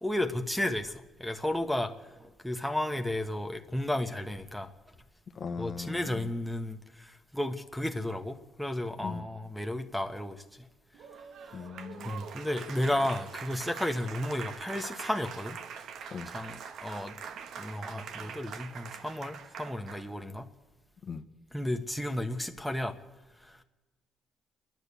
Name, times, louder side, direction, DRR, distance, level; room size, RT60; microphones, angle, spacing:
voice 1, 0.0-4.7 5.6-10.6 11.4-11.7 12.0-15.6 16.3-17.2 17.6-20.5 21.5-23.0 23.4-23.6, left 1 dB, ahead, 1.4 m, -33 dB
voice 2, 5.4-6.1 9.0-9.2 11.5-12.2 16.1-16.3 21.1-21.2, left 5 dB, 50° left, 1.3 m, -38 dB
Applause, 10.9-20.1, right 7 dB, 70° right, 1.2 m, -43 dB
29.5 x 11.0 x 8.4 m
cardioid pair, 90°, 0 cm